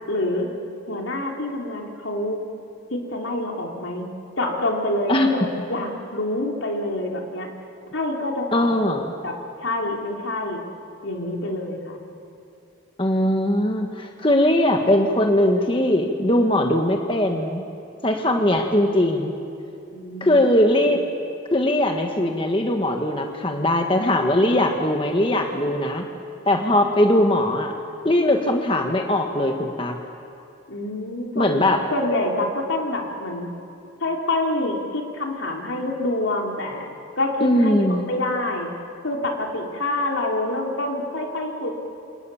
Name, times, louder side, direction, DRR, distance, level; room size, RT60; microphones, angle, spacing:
voice 1, 0.1-0.5 0.9-2.4 3.1-4.1 4.4-7.5 7.9-8.7 9.2-9.3 9.6-10.6 11.0-12.0 19.9-20.9 30.7-31.6 31.9-33.5 34.0-38.7 39.0-41.7, left 1 dB, 80° left, 0 dB, 3.7 m, -26 dB
voice 2, 8.5-9.1 13.0-17.6 18.0-19.3 20.2-21.0 21.5-26.0 26.4-27.7 28.0-30.0 31.3-31.8 37.4-38.1, left 1 dB, 25° left, 3 dB, 1.5 m, -20 dB
29.0 x 27.5 x 7.2 m, 2.7 s
head